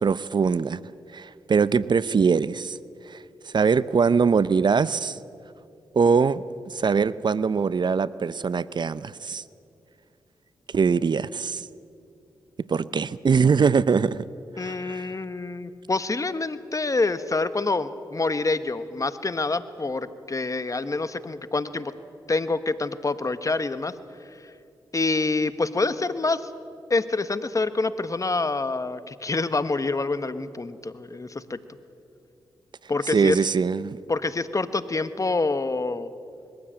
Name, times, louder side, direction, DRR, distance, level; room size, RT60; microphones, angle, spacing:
voice 1, 0.0-0.8 1.1-2.8 3.1-3.2 3.5-5.2 5.9-9.4 10.7-11.7 12.7-14.2 14.6-15.1 33.1-34.0, right 5 dB, 50° right, 17 dB, 0.6 m, -22 dB
voice 2, 14.6-21.9 22.3-23.9 24.9-26.5 26.9-31.6 32.9-33.4 34.1-36.1, left 3 dB, 35° left, 13 dB, 1.2 m, -26 dB
21.5 x 15.5 x 8.8 m, 2.6 s
supercardioid pair, 40°, 10 cm